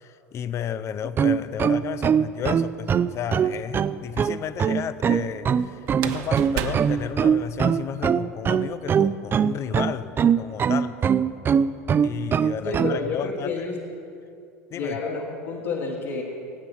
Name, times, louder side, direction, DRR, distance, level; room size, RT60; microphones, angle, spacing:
voice 1, 0.0-10.1 10.4-11.0 12.0-13.7 14.7-15.0, left 9 dB, 35° left, 14 dB, 0.5 m, -33 dB
sound 1, 1.0-13.0, right 7 dB, 25° right, 0.5 m, -21 dB
sound 2, 2.8-3.5 5.9-7.9, right 8 dB, 55° right, 1.0 m, -33 dB
voice 2, 12.6-13.8 14.7-16.2, left 3 dB, 65° left, -4 dB, 2.0 m, -29 dB
22.5 x 9.2 x 4.5 m, 2.6 s
hypercardioid pair, 80°, 8 cm